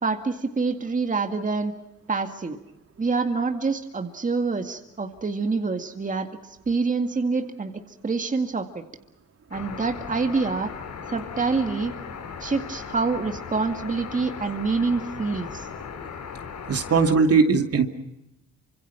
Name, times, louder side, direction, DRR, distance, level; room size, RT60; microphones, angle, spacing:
voice 1, 0.0-1.7 2.1-2.6 3.0-8.9 9.5-10.7 11.1-11.9 12.4-15.7, right 4 dB, 25° right, 5 dB, 2.0 m, -26 dB
sound 1, 9.5-17.1, left 6 dB, 65° left, 4.7 m, -37 dB
voice 2, 16.7-17.8, right 5 dB, 50° right, 5 dB, 2.6 m, -19 dB
28.0 x 25.5 x 5.8 m, 0.90 s
cardioid pair, 90°, 30 cm